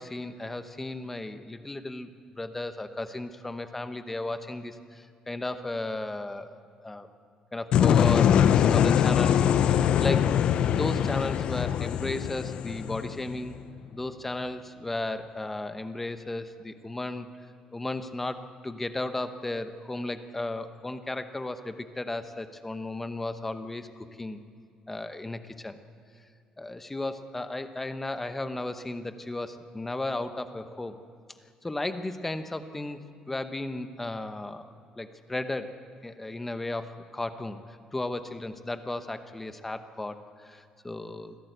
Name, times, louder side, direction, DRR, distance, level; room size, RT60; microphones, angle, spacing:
voice 1, 0.0-2.1 2.4-6.6 6.8-7.1 7.5-13.6 13.9-17.3 17.7-24.4 24.9-25.8 26.6-31.0 31.6-34.7 35.0-35.8 36.0-41.4, left 2 dB, 10° left, 9 dB, 0.9 m, -35 dB
sound 1, 7.7-13.6, left 9 dB, 50° left, 0.6 m, -23 dB
25.0 x 16.5 x 8.0 m, 2.3 s
cardioid pair, 170°, 2 cm